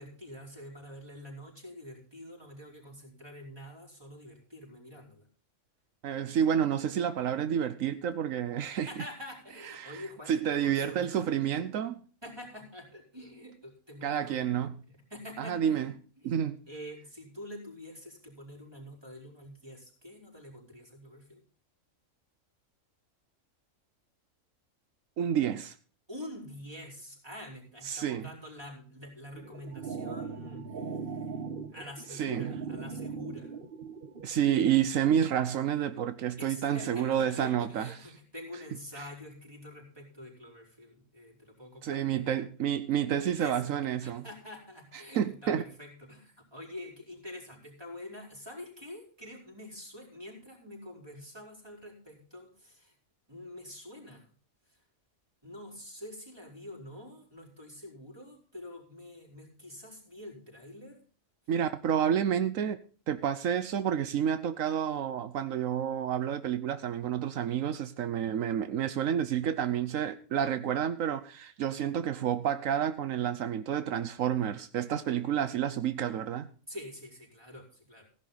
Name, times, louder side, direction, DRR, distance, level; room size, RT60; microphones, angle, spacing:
voice 1, 0.0-5.3 8.9-11.3 12.2-14.5 14.9-16.3 16.7-21.4 26.1-31.4 31.7-33.6 36.4-42.3 43.3-43.7 44.0-52.9 53.3-54.3 54.7-54.8 55.4-61.0 76.7-78.1, left 1 dB, 20° right, 4.7 m, -46 dB
voice 2, 6.0-8.9 9.8-10.0 10.3-12.0 14.0-14.8 15.4-15.9 16.3-16.6 25.2-25.8 27.8-28.3 32.2-32.5 34.2-37.9 41.8-44.2 45.2-45.6 61.5-62.8 63.1-76.5, right 9 dB, 80° right, 1.2 m, -29 dB
sound 1, 29.3-34.3, right 5 dB, 45° right, 1.4 m, -39 dB
16.0 x 11.0 x 4.0 m
omnidirectional pair, 1.3 m